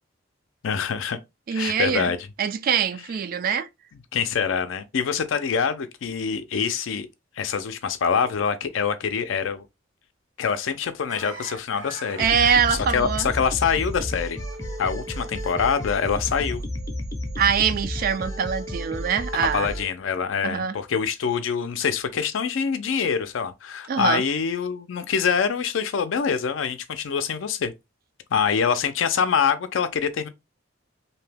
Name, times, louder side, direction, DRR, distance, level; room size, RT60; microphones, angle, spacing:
voice 1, 0.6-1.2 1.5-2.2 4.1-7.1 7.4-9.6 10.4-14.4 14.8-16.6 19.5-27.7 28.3-30.3, left 6 dB, 75° left, 0.4 m, -25 dB
voice 2, 1.5-2.1 2.4-3.7 12.2-13.3 17.4-19.7 20.4-20.8 23.9-24.2, right 7 dB, 45° right, 0.3 m, -23 dB
sound 1, 11.1-15.0 15.3-16.6, right 2 dB, 65° right, 1.0 m, -43 dB
sound 2, 12.2-19.9, left 1 dB, 15° left, 0.5 m, -32 dB
2.7 x 2.1 x 3.3 m
head